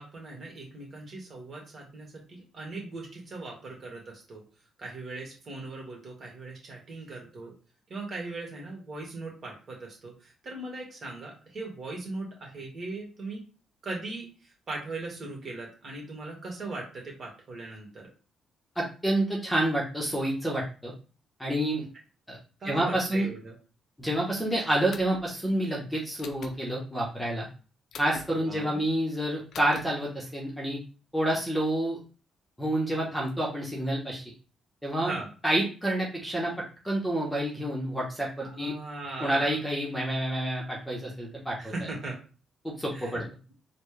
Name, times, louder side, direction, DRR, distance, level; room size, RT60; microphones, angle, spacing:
voice 1, 0.0-4.4 4.8-7.5 7.9-13.4 13.8-18.1 22.6-23.5 28.4-28.8 35.0-35.3 38.4-39.6 41.6-42.2 42.9-43.3, right 2 dB, 45° right, -1 dB, 1.8 m, -39 dB
voice 2, 18.8-20.9 21.4-21.9 22.3-22.4 22.6-23.3 24.0-27.5 28.0-30.8 31.1-32.0 32.6-34.2 34.8-35.2 35.4-36.5 36.8-38.7 39.2-41.7 42.6-43.2, right 1 dB, 5° left, -3 dB, 1.1 m, -28 dB
sound 1, 24.9-25.3 26.2-26.6 27.9-28.3 29.5-29.8, left 6 dB, 65° left, 0.5 m, -43 dB
4.2 x 2.3 x 3.3 m, 0.35 s
cardioid pair, 90°, 0 cm